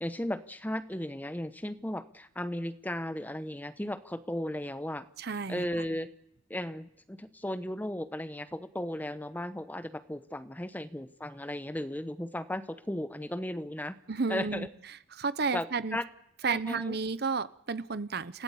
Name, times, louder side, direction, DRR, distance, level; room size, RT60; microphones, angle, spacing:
voice 1, 0.0-5.1 5.5-6.1 6.5-14.0 14.3-14.7 15.5-16.0 16.4-17.0, left 1 dB, 10° left, 11 dB, 0.8 m, -35 dB
voice 2, 5.2-5.7 14.1-14.7 15.1-16.0 16.4-18.4, right 4 dB, 55° right, 15 dB, 0.8 m, -32 dB
29.0 x 15.0 x 8.6 m, 0.78 s
head